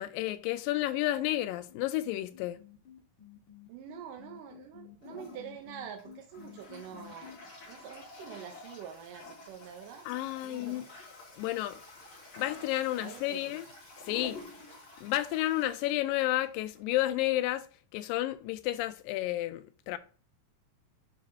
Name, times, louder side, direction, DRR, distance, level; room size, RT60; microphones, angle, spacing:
voice 1, 0.0-2.6 10.1-10.9 11.4-11.8 12.4-13.7 14.1-14.4 15.0-17.7 17.9-20.0, left 15 dB, 80° left, 2.2 m, -31 dB
sound 1, 1.7-7.4, left 11 dB, 60° left, 2.9 m, -52 dB
voice 2, 3.7-7.3 7.7-10.0 10.4-10.8 13.0-13.5, right 8 dB, 75° right, 2.2 m, -46 dB
Toilet flush, 5.0-16.8, left 2 dB, 40° left, 3.2 m, -50 dB
9.4 x 4.0 x 2.8 m
omnidirectional pair, 4.2 m